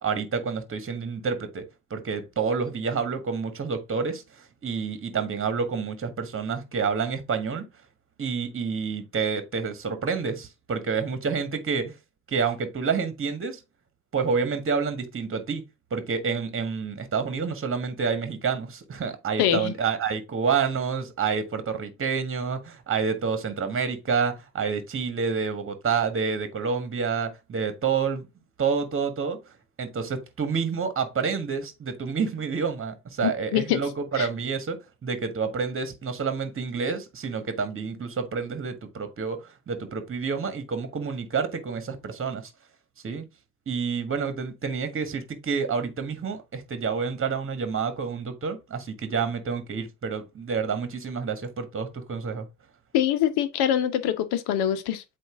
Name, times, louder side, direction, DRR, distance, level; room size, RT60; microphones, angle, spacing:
voice 1, 0.0-7.6 8.2-11.9 12.3-13.6 14.1-15.6 15.9-28.3 28.6-29.4 29.8-42.5 43.0-43.2 43.7-52.5, right 5 dB, 30° right, 1.6 m, -28 dB
voice 2, 19.4-19.7 33.2-33.8 34.1-34.3 52.9-55.0, left 10 dB, 60° left, 1.2 m, -24 dB
7.9 x 2.8 x 4.8 m
figure-of-eight pair, 60°, 45 cm